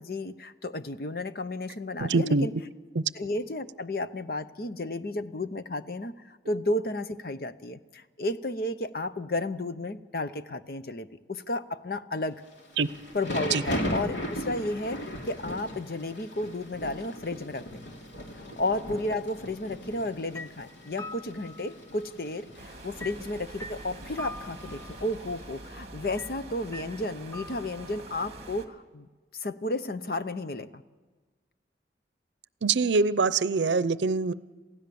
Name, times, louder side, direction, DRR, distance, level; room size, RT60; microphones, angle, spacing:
voice 1, 0.0-2.5 3.1-12.4 13.1-17.7 18.4-29.1 29.3-30.8, left 2 dB, 55° left, 12 dB, 0.8 m, -33 dB
voice 2, 2.0-2.5 3.0-3.1 12.8-12.9 13.5-13.6 32.6-34.3, right 4 dB, 85° right, 16 dB, 0.6 m, -24 dB
Thunder / Rain, 12.5-25.6, equal, 85° left, 2.8 m, -38 dB
sound 1, 19.9-20.1 20.3-22.2 23.0-25.0 26.2-26.3 26.7-28.0, left 1 dB, 15° left, 0.8 m, -44 dB
sound 2, 22.6-28.7, right 2 dB, 35° right, 1.8 m, -45 dB
28.0 x 16.0 x 7.0 m, 1.4 s
head